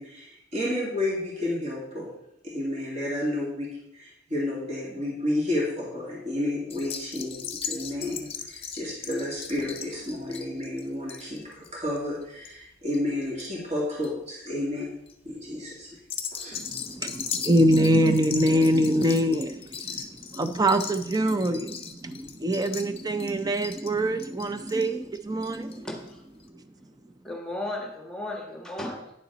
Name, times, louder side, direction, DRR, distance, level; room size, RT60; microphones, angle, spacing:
voice 1, 0.0-2.1 2.4-14.9 15.2-15.9 16.3-16.6, left 1 dB, 35° right, -5 dB, 2.3 m, -31 dB
sound 1, 6.7-13.5 13.8-14.3 14.8-15.1 16.0-25.8 26.1-26.2 26.4-26.5, left 7 dB, 30° left, 0.8 m, -38 dB
voice 2, 16.5-25.9 26.4-26.5, right 1 dB, 20° right, 9 dB, 0.5 m, -24 dB
voice 3, 25.8-26.2 27.2-29.1, left 1 dB, 5° left, 1 dB, 1.4 m, -35 dB
9.8 x 7.0 x 4.0 m, 0.81 s
head